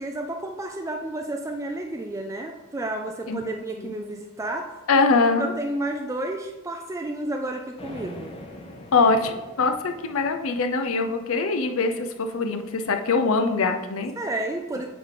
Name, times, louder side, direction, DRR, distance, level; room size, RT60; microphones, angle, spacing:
voice 1, 0.0-4.7 5.1-8.3 14.2-14.8, right 1 dB, 15° right, 2 dB, 0.4 m, -31 dB
voice 2, 4.9-5.5 8.9-14.1, left 4 dB, 70° left, 6 dB, 0.6 m, -23 dB
sound 1, 7.8-11.7, left 1 dB, 25° left, 0.7 m, -44 dB
8.3 x 3.7 x 3.7 m, 1.1 s
head